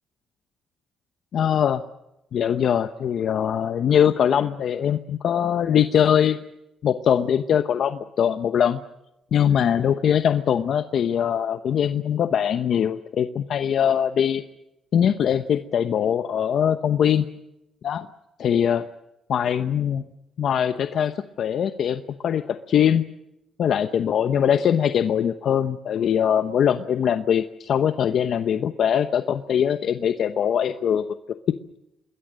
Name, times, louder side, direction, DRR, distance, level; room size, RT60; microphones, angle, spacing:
voice 1, 1.3-1.8 2.3-6.4 6.8-8.8 9.3-14.4 14.9-17.3 17.8-18.1 18.4-18.8 19.3-20.1 20.4-23.0 23.6-31.0, left 9 dB, 65° left, 9 dB, 0.9 m, -22 dB
27.0 x 21.0 x 6.5 m, 0.90 s
cardioid pair, 90°, 0 cm